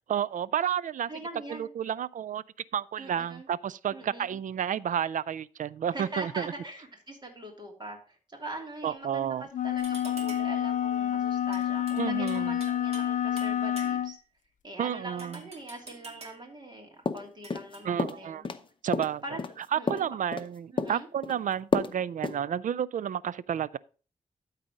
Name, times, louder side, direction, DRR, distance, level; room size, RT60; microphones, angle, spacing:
voice 1, 0.1-1.1 1.5-2.4 2.7-6.5 8.8-9.5 12.0-12.6 14.8-15.4 17.8-18.4 18.8-19.2 19.7-23.8, right 9 dB, 70° right, 0.4 m, -31 dB
voice 2, 1.1-1.7 3.0-3.5 3.9-4.4 5.9-14.2 14.6-18.5 19.2-19.4 19.8-20.2 20.7-21.1, right 2 dB, 35° right, 3.0 m, -42 dB
sound 1, 9.5-14.1, left 10 dB, 65° left, 0.4 m, -28 dB
sound 2, 9.8-10.6 11.5-13.1 13.4-14.2 15.2-16.5 17.4-17.8, right 2 dB, 50° right, 2.4 m, -47 dB
sound 3, 17.1-17.7 18.0-18.6 18.9-20.5 20.8-21.4 21.7-22.0 22.2-22.4, left 4 dB, 40° left, 0.8 m, -30 dB
12.5 x 4.2 x 5.1 m
cardioid pair, 90°, 14 cm